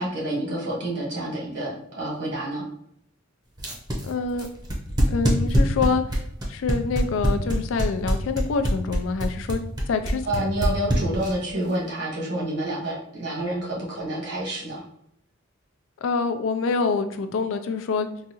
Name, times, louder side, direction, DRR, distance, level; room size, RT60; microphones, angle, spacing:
voice 1, 0.0-2.6 10.3-14.8, right 1 dB, 65° right, -4 dB, 1.4 m, -28 dB
sound 1, 3.6-11.5, equal, 20° right, 0.7 m, -23 dB
voice 2, 4.0-4.5 5.1-6.0 6.5-9.6 9.9-10.4 16.0-18.1, left 4 dB, 75° left, 8 dB, 0.3 m, -26 dB
3.9 x 2.3 x 2.9 m, 0.71 s
head